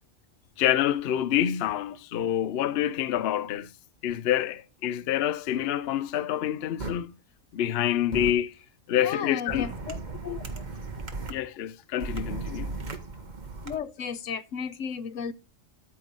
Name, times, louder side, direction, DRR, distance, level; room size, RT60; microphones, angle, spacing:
voice 1, 0.6-3.7 4.0-7.1 7.5-8.5 8.9-9.7 11.3-12.7, left 11 dB, 60° left, 0.8 m, -27 dB
sound 1, 6.8-6.9 8.1-8.3 9.5-11.3 12.0-13.7, right 3 dB, 40° right, 1.4 m, -36 dB
voice 2, 8.9-10.6 13.6-15.3, left 6 dB, 85° left, 1.2 m, -34 dB
13.0 x 4.7 x 5.3 m
omnidirectional pair, 1.3 m